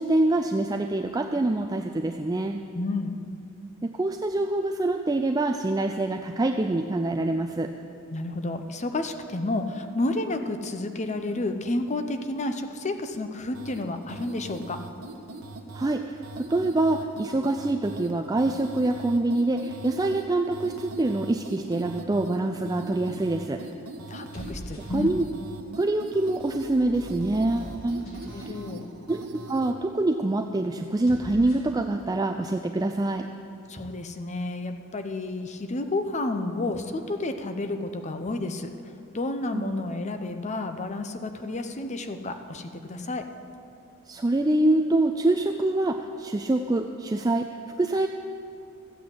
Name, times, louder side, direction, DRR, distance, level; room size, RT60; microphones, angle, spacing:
voice 1, 0.0-2.6 3.8-7.7 15.7-23.6 24.9-25.2 25.8-28.1 28.3-28.5 29.1-29.2 29.5-33.3 39.5-39.8 44.1-48.1, right 2 dB, 15° right, 4 dB, 0.4 m, -25 dB
voice 2, 2.7-3.2 8.1-14.8 24.1-25.2 28.0-28.9 33.7-38.7 39.1-43.4, left 2 dB, 30° left, 7 dB, 0.7 m, -31 dB
sound 1, 13.5-29.8, right 2 dB, 85° right, 1.1 m, -41 dB
sound 2, 24.1-25.5 26.2-28.5 30.9-31.8, right 1 dB, 85° left, 3.6 m, -43 dB
14.5 x 8.5 x 7.6 m, 2.6 s
head